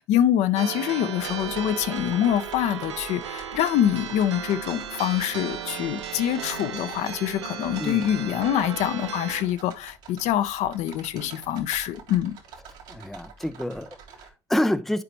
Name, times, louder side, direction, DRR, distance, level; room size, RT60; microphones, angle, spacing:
voice 1, 0.0-12.3, left 11 dB, 55° left, 0.7 m, -25 dB
sound 1, 0.6-9.4, right 8 dB, 80° right, 0.7 m, -35 dB
sound 2, 1.2-14.3, right 5 dB, 60° right, 2.0 m, -46 dB
voice 2, 12.9-15.0, left 1 dB, ahead, 0.5 m, -28 dB
10.5 x 4.9 x 3.0 m
figure-of-eight pair, 60°, 14 cm